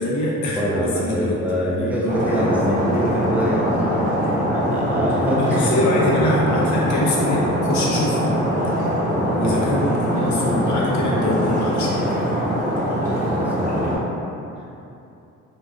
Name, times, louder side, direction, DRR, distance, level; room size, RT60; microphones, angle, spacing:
voice 1, 0.0-1.4 1.7-2.4 4.3-4.4 5.4-8.4 9.3-12.1, left 1 dB, 70° left, -4 dB, 0.6 m, -24 dB
voice 2, 0.6-6.2 9.4-9.7 13.2-13.9, equal, 5° right, -6 dB, 0.4 m, -25 dB
Stream, 2.1-14.0, equal, 25° right, 0.9 m, -22 dB
2.4 x 2.4 x 2.2 m, 2.8 s
cardioid pair, 90°, 30 cm